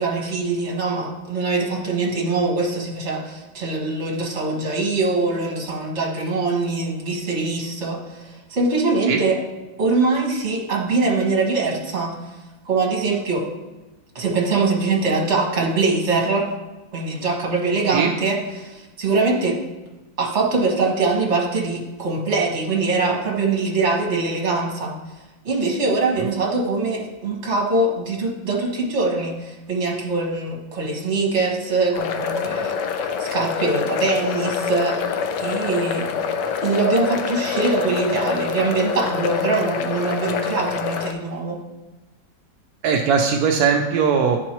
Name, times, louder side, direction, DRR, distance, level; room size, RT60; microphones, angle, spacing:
voice 1, 0.0-9.4 9.8-12.1 12.6-13.4 14.1-16.5 16.9-19.6 20.2-24.9 25.4-32.8 33.2-35.0 35.4-36.0 36.6-41.6, right 3 dB, 40° right, -2 dB, 1.6 m, -23 dB
sound 1, 32.0-41.1, left 7 dB, 75° left, 1.2 m, -26 dB
voice 2, 42.8-44.4, right 6 dB, 75° right, 2 dB, 0.9 m, -19 dB
11.0 x 4.6 x 3.0 m, 1.1 s
omnidirectional pair, 2.1 m